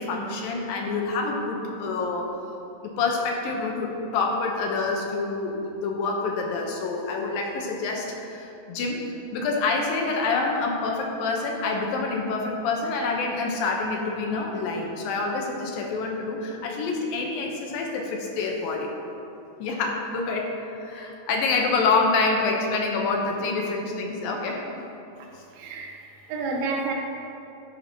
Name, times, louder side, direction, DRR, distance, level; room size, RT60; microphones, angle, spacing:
voice 1, 0.0-2.4 2.8-9.0 9.3-18.9 19.6-24.7, left 3 dB, 75° left, 1 dB, 2.7 m, -27 dB
voice 2, 25.5-26.0 26.3-26.9, right 4 dB, 80° right, 1 dB, 3.0 m, -29 dB
14.0 x 11.5 x 3.0 m, 2.9 s
omnidirectional pair, 4.3 m